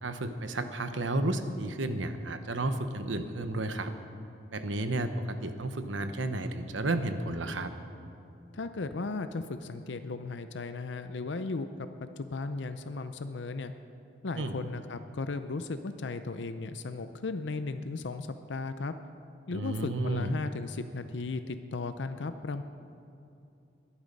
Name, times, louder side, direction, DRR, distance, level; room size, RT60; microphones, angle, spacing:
voice 1, 0.0-3.9 4.5-7.7 14.4-14.5 19.5-20.3, right 2 dB, 85° right, 8 dB, 1.1 m, -32 dB
voice 2, 8.5-13.7 14.2-18.9 19.5-22.6, left 3 dB, 75° left, 9 dB, 0.6 m, -36 dB
20.5 x 11.5 x 5.4 m, 2.6 s
head